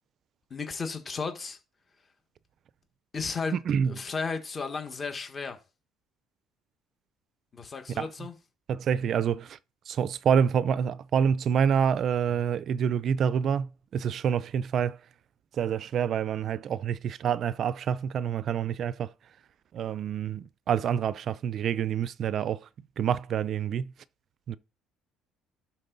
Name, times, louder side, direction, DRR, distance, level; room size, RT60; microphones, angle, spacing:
voice 1, 0.5-1.6 3.1-3.6 3.8-5.6 7.5-8.3, left 4 dB, 25° left, 1.5 m, -34 dB
voice 2, 8.7-9.6 9.9-13.7 13.9-15.0 15.6-19.1 19.7-22.6 23.0-23.9 24.5-24.6, right 8 dB, 45° right, 0.5 m, -27 dB
12.0 x 4.5 x 4.0 m
cardioid pair, 135°, 0 cm